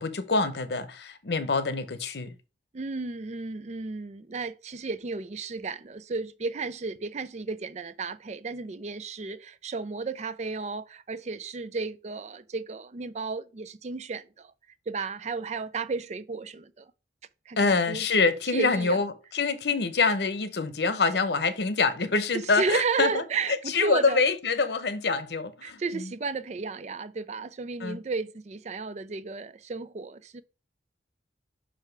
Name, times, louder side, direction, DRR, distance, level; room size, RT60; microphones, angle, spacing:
voice 1, 0.0-2.3 17.6-23.2 23.7-26.1 27.8-28.0, left 4 dB, 70° left, 0.8 m, -26 dB
voice 2, 2.7-14.5 14.9-16.9 17.5-18.1 18.5-19.0 22.3-24.2 25.6-30.4, right 4 dB, 40° right, 0.4 m, -33 dB
5.8 x 4.9 x 4.6 m
head